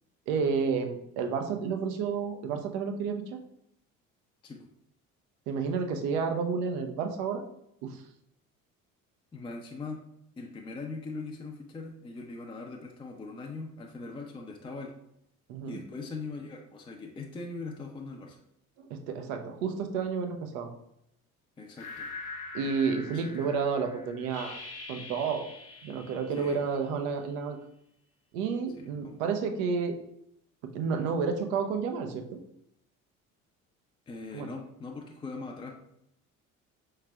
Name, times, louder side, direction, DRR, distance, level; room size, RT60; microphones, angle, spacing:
voice 1, 0.3-3.2 5.5-7.4 7.8-8.0 15.5-15.8 18.8-20.7 22.5-24.6 24.9-25.5 25.8-27.6 28.3-30.0 30.7-32.4 34.3-34.5, right 5 dB, 65° right, 5 dB, 0.7 m, -30 dB
voice 2, 9.3-10.0 10.4-14.9 15.7-18.4 21.6-22.1 23.1-23.2 26.3-26.6 28.8-29.1 34.1-35.8, left 3 dB, 15° left, 1 dB, 0.4 m, -41 dB
sound 1, 21.8-27.2, left 3 dB, 75° left, 0.7 m, -44 dB
4.7 x 3.2 x 2.3 m, 0.77 s
figure-of-eight pair, 55°, 42 cm